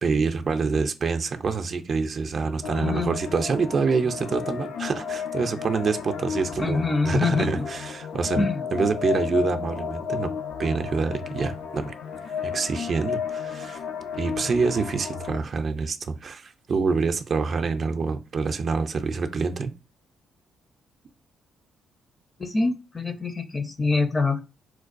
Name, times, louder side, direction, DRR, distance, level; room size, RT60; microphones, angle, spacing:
voice 1, 0.0-10.3 10.6-11.9 12.4-13.8 14.2-19.7, right 4 dB, 45° right, 0.4 m, -26 dB
sound 1, 2.6-15.4, left 7 dB, 75° left, 0.4 m, -33 dB
voice 2, 2.8-3.1 6.6-7.7 8.4-8.6 22.4-24.4, left 3 dB, 25° left, 0.5 m, -25 dB
4.4 x 2.2 x 2.5 m
cardioid pair, 90°, 0 cm